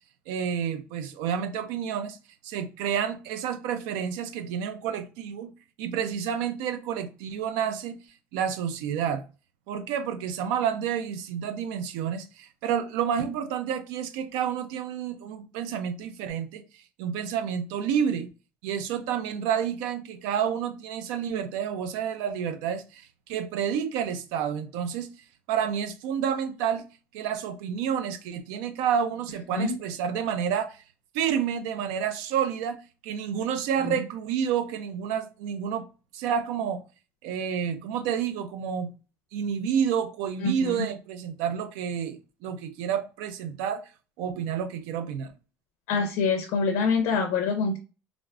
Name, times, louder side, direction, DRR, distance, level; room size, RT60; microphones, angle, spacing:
voice 1, 0.3-2.2 2.4-5.5 5.8-8.0 8.3-9.2 9.7-16.6 17.0-18.3 18.6-23.0 23.3-25.1 25.5-26.8 27.1-30.8 31.1-35.9 36.1-36.8 37.2-38.9 39.3-43.8 44.2-45.3, right 8 dB, 85° right, 0.5 m, -29 dB
voice 2, 40.4-40.9 45.9-47.8, left 4 dB, 65° left, 0.5 m, -25 dB
3.4 x 2.4 x 2.3 m
cardioid pair, 170°, 6 cm